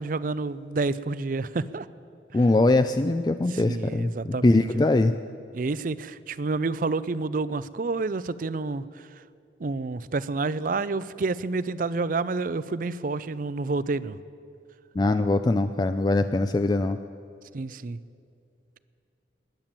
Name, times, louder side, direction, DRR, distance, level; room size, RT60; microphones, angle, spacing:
voice 1, 0.0-1.9 3.5-5.0 5.5-8.8 9.6-14.2 17.5-18.0, right 3 dB, 45° right, 17 dB, 0.4 m, -29 dB
voice 2, 2.3-5.1 15.0-17.0, left 2 dB, 20° left, 9 dB, 0.3 m, -22 dB
21.0 x 9.0 x 7.5 m, 2.5 s
head